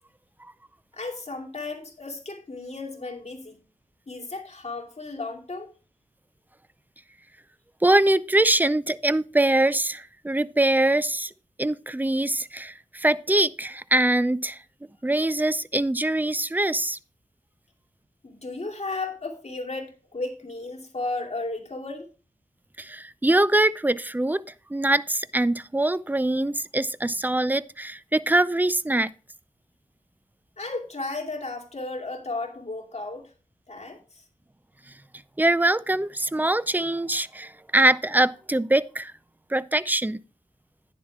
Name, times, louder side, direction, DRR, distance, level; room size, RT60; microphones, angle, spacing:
voice 1, 0.9-3.6 4.1-5.7 18.2-22.1 30.6-33.3 33.7-34.2, left 3 dB, 50° left, 2.6 m, -34 dB
voice 2, 7.8-11.3 11.6-14.6 15.0-17.0 22.8-24.4 24.7-29.1 35.4-39.1 39.5-40.2, right 1 dB, 10° right, 0.5 m, -23 dB
11.0 x 10.0 x 2.3 m
wide cardioid pair, 55°, 14 cm